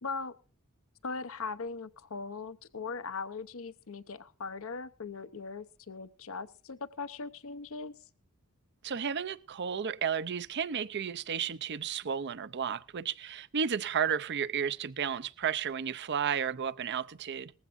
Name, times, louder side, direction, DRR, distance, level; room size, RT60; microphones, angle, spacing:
voice 1, 0.0-0.4 1.0-7.9, left 4 dB, 70° left, 0.8 m, -39 dB
voice 2, 8.8-17.5, right 7 dB, 55° right, 0.6 m, -33 dB
19.5 x 15.5 x 2.6 m
head